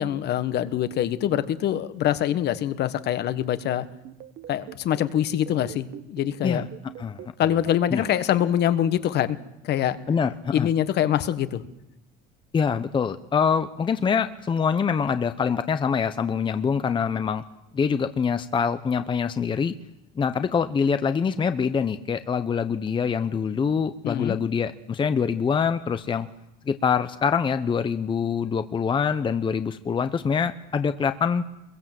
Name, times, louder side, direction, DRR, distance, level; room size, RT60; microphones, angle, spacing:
voice 1, 0.0-3.9 4.5-6.7 7.4-9.4 9.6-10.0 10.5-11.6 24.0-24.4, left 11 dB, 50° left, 12 dB, 1.4 m, -24 dB
sound 1, 4.0-7.9, right 12 dB, 50° right, 1.3 m, -41 dB
voice 2, 7.0-7.3 7.9-8.0 10.1-10.7 12.5-17.4 17.7-19.7 20.2-26.3 26.7-31.4, left 6 dB, 25° left, 10 dB, 0.9 m, -25 dB
25.5 x 22.5 x 7.8 m, 0.91 s
cardioid pair, 135°, 21 cm